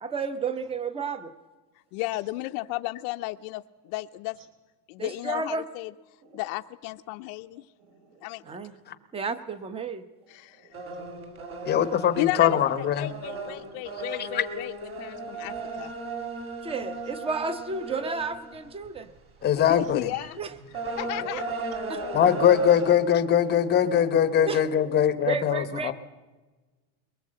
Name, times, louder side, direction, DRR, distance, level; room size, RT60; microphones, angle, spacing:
voice 1, 0.0-1.3 5.0-5.7 8.4-8.7 9.1-10.0 16.6-19.1 20.4-20.5 21.1-21.5 21.9-22.0 24.4-24.6 25.2-25.9, right 5 dB, 10° right, 13 dB, 0.8 m, -32 dB
voice 2, 1.9-4.4 4.9-5.9 6.3-7.7 8.2-8.4 10.3-10.7 12.2-14.7 15.0-15.9 19.7-20.4 21.0-21.5, left 20 dB, 60° left, 6 dB, 0.7 m, -33 dB
voice 3, 6.2-6.5 7.6-8.8 10.2-11.0 12.9-14.1 15.2-15.5 16.0-16.3 19.8-19.9, right 3 dB, 60° right, 6 dB, 4.3 m, -56 dB
sound 1, 10.7-19.0 19.5-19.7 20.1-22.9, right 3 dB, 30° right, 3.0 m, -36 dB
voice 4, 11.7-13.1 14.2-14.4 19.4-20.1 22.1-25.9, left 9 dB, 20° left, 12 dB, 0.8 m, -22 dB
22.5 x 19.5 x 7.6 m, 1.3 s
cardioid pair, 170°, 46 cm